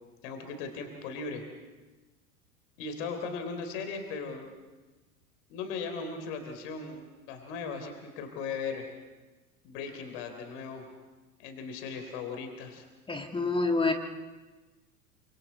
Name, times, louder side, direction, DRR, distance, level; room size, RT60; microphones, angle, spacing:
voice 1, 0.2-1.4 2.8-4.5 5.5-8.9 9.6-10.9 11.4-12.9, left 5 dB, 50° left, 5 dB, 3.8 m, -38 dB
voice 2, 13.1-13.9, left 3 dB, 10° left, 5 dB, 1.6 m, -27 dB
28.5 x 26.5 x 4.2 m, 1.2 s
figure-of-eight pair, 85°, 45 cm